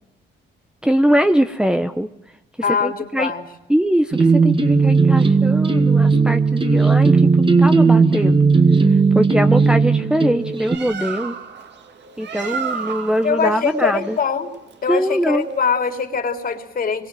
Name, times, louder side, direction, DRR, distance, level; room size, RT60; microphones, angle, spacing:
voice 1, 0.8-2.1 2.7-3.3 3.7-8.4 8.9-11.3 12.2-14.2 14.9-15.5, equal, 5° right, 6 dB, 1.0 m, -21 dB
voice 2, 2.6-3.5 13.2-14.5 14.8-17.1, left 6 dB, 45° left, 5 dB, 3.5 m, -22 dB
sound 1, 4.1-10.8, right 4 dB, 25° right, 2.2 m, -15 dB
Bird, 10.4-15.6, right 6 dB, 60° right, 2.4 m, -32 dB
24.5 x 22.5 x 7.8 m, 0.90 s
cardioid pair, 90°, 20 cm